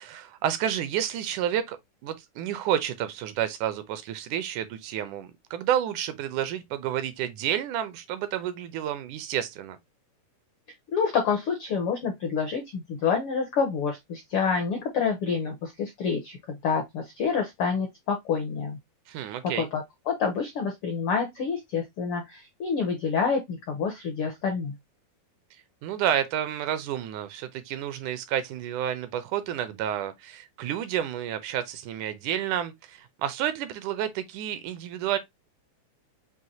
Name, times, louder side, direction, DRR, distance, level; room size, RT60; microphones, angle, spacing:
voice 1, 0.0-1.8 2.0-9.8 19.1-19.7 25.8-35.2, right 10 dB, 80° right, 2.0 m, -30 dB
voice 2, 10.9-18.8 19.5-24.7, left 5 dB, 75° left, 1.2 m, -28 dB
6.3 x 2.6 x 2.8 m
omnidirectional pair, 3.7 m